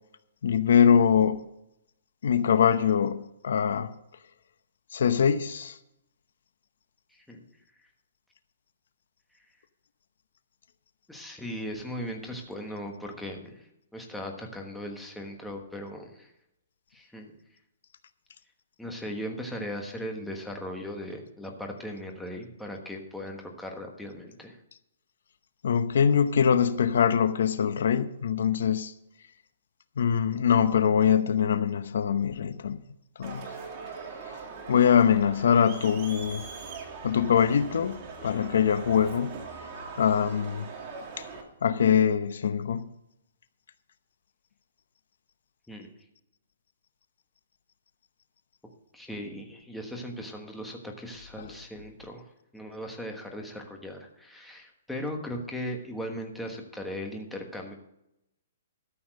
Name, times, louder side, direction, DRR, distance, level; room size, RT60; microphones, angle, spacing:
voice 1, 0.4-1.4 2.2-3.9 4.9-5.8 25.6-28.9 30.0-32.8 33.2-33.5 34.7-36.5 37.0-38.0 38.2-39.3 40.0-40.7 41.6-42.9 51.4-51.5, left 7 dB, 70° left, 0.7 m, -23 dB
voice 2, 7.1-7.4 11.1-13.7 13.9-16.3 16.9-17.3 18.8-24.6 45.7-45.9 48.9-52.2 52.5-57.7, equal, 5° left, 1.3 m, -38 dB
Crowd, 33.2-41.4, right 4 dB, 30° right, 2.1 m, -41 dB
13.0 x 7.0 x 6.4 m
hypercardioid pair, 165°, 0 cm